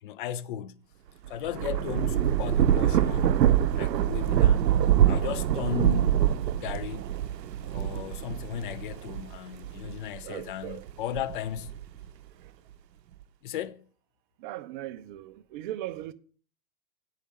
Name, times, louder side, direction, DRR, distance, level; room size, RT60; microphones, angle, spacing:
voice 1, 0.0-0.8 1.3-3.4 3.7-6.1 6.6-7.0 7.7-11.8 13.4-13.9, left 10 dB, 35° left, 0.4 m, -36 dB
Thunder / Rain, 1.3-10.2 10.7-12.1, right 10 dB, 90° right, 0.6 m, -25 dB
voice 2, 10.2-10.9 12.3-12.5 14.4-16.1, right 14 dB, 30° right, 0.6 m, -39 dB
8.3 x 4.8 x 7.4 m
hypercardioid pair, 120°, 48 cm